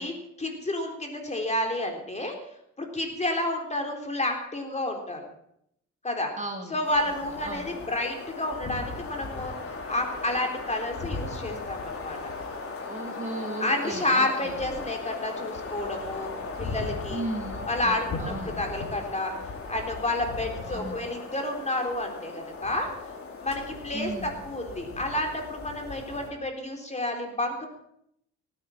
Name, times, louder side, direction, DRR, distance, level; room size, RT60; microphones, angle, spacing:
voice 1, 0.0-2.3 2.8-5.2 6.0-6.3 6.7-9.5 9.9-12.2 13.6-16.3 16.6-17.2 17.7-19.3 19.7-22.9 23.4-27.7, left 1 dB, 20° left, 3 dB, 3.8 m, -30 dB
voice 2, 6.4-6.8 7.4-7.7 12.8-14.5 17.1-18.6 20.7-21.0 23.9-24.3, right 2 dB, 25° right, 3 dB, 2.7 m, -36 dB
sound 1, 6.8-26.3, left 3 dB, 45° left, 3.9 m, -37 dB
18.0 x 9.8 x 7.2 m, 0.74 s
cardioid pair, 90°, 30 cm